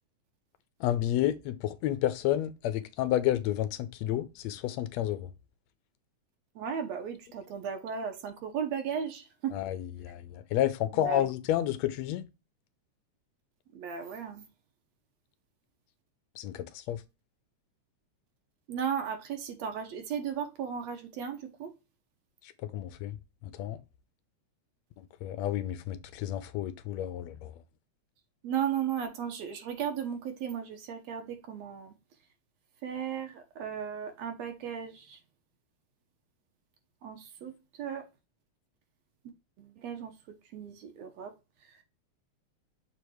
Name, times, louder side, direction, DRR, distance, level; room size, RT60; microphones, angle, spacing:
voice 1, 0.8-5.3 9.5-12.3 16.4-17.0 22.6-23.2 23.4-23.8 25.2-27.5, left 12 dB, 75° left, 1.7 m, -30 dB
voice 2, 6.6-9.6 10.9-11.3 13.7-14.4 18.7-21.7 28.4-31.9 32.8-35.2 37.0-38.1 39.2-41.3 41.6-41.8, right 7 dB, 65° right, 2.1 m, -36 dB
7.0 x 3.3 x 4.7 m
omnidirectional pair, 3.5 m